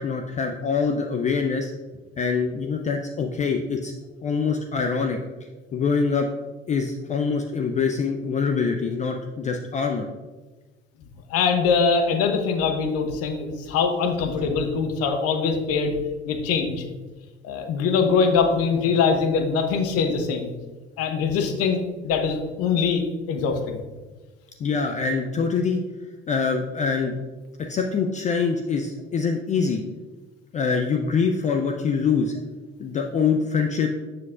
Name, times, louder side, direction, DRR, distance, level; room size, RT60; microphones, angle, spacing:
voice 1, 0.0-1.7 2.2-3.9 4.2-5.2 5.7-6.3 6.7-10.1 24.6-25.8 26.3-27.1 27.7-29.8 30.5-32.3 32.8-33.9, left 5 dB, 25° left, 4 dB, 0.4 m, -24 dB
voice 2, 11.3-15.9 16.2-16.8 17.4-20.5 21.0-23.0 23.3-23.8, left 5 dB, 45° left, 5 dB, 0.9 m, -23 dB
7.4 x 5.9 x 2.4 m, 1.3 s
figure-of-eight pair, 65°, 33 cm